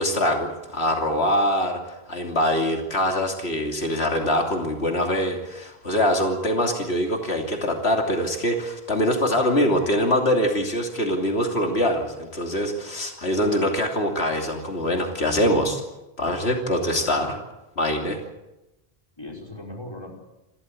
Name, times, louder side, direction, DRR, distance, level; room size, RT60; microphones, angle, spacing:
voice 1, 0.0-1.8 2.1-15.8 16.2-17.3 17.8-18.2, equal, 90° left, 2 dB, 3.2 m, -23 dB
voice 2, 16.6-17.2 19.2-20.2, left 1 dB, 25° left, 2 dB, 5.2 m, -39 dB
28.0 x 14.0 x 8.5 m, 0.98 s
omnidirectional pair, 1.0 m